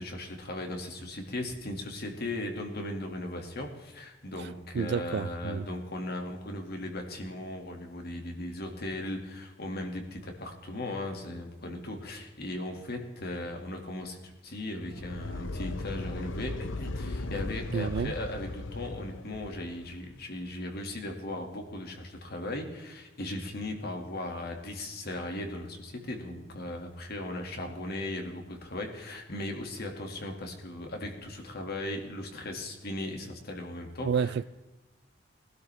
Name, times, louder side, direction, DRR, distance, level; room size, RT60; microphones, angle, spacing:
voice 1, 0.0-34.3, left 1 dB, 55° left, 2.1 m, -37 dB
voice 2, 4.7-5.7 17.7-18.1 34.1-34.4, right 6 dB, 60° right, 0.3 m, -29 dB
sound 1, 14.8-20.0, left 2 dB, 80° left, 0.8 m, -37 dB
20.0 x 12.0 x 3.4 m
head